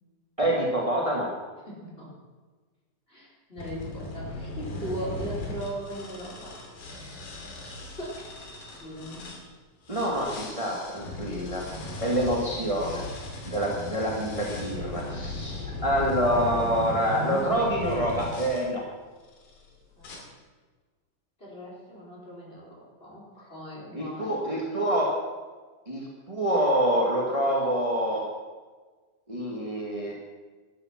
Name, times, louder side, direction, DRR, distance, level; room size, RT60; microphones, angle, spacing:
voice 1, 0.4-1.3 9.9-11.6 12.0-18.8 23.9-25.1 25.8-28.2 29.3-30.1, equal, 20° right, -3 dB, 1.0 m, -27 dB
voice 2, 1.7-2.1 3.1-6.5 6.9-7.0 7.6-8.2 8.8-9.3 13.3-13.5 16.0-16.1 16.3-16.6 20.0-20.3 21.4-24.4, right 1 dB, 15° left, -5 dB, 4.4 m, -39 dB
sound 1, 3.6-9.4 9.9-18.6 19.3-19.6 20.0-20.2, left 2 dB, 75° left, 4.5 m, -37 dB
13.5 x 12.5 x 6.0 m, 1.4 s
omnidirectional pair, 4.1 m